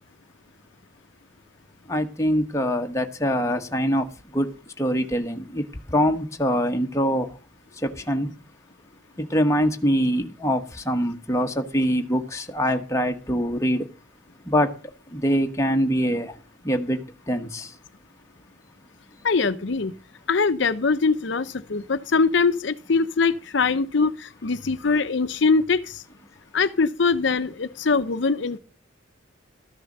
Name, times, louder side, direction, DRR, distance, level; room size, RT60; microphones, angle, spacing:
voice 1, 1.9-7.3 7.7-8.3 9.2-13.9 14.4-17.8, equal, 15° left, 1.1 m, -24 dB
voice 2, 19.2-19.9 20.3-26.0 26.5-28.6, left 4 dB, 60° left, 0.6 m, -22 dB
13.5 x 6.7 x 6.5 m
head